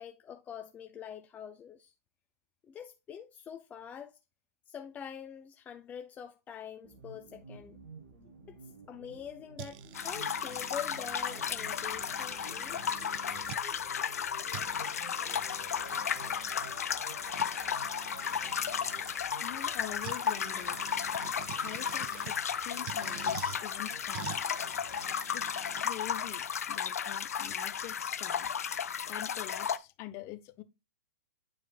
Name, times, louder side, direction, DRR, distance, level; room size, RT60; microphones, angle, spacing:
voice 1, 0.0-1.9 2.6-4.2 4.7-7.8 8.5-8.6 8.9-12.8 17.8-17.9 18.8-18.9, left 8 dB, 20° left, 0.5 m, -45 dB
sound 1, 6.8-25.1, right 3 dB, 60° right, 1.9 m, -51 dB
sound 2, 9.6-13.6 14.2-14.3 14.5-19.1 20.0-22.4 22.9-23.6 24.1-25.8, right 16 dB, 40° right, 0.4 m, -48 dB
sound 3, 9.9-29.8, left 8 dB, 70° left, 0.6 m, -34 dB
voice 2, 19.4-20.8 21.6-24.4 25.3-25.5 25.8-28.5 29.1-30.6, left 15 dB, 35° left, 0.9 m, -45 dB
9.9 x 4.7 x 2.4 m
figure-of-eight pair, 115°, 8 cm